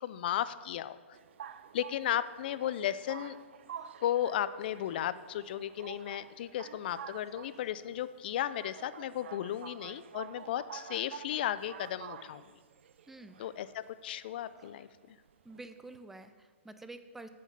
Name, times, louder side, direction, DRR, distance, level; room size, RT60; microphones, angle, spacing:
voice 1, 0.0-1.0 1.7-3.4 4.0-12.4 13.4-15.2, left 11 dB, 45° left, 15 dB, 0.5 m, -35 dB
sound 1, 1.1-16.0, right 8 dB, 60° right, 0.5 m, -49 dB
voice 2, 13.1-13.4 15.4-17.3, right 2 dB, 5° right, 9 dB, 0.5 m, -48 dB
7.9 x 7.5 x 6.9 m, 1.5 s
hypercardioid pair, 145°, 7 cm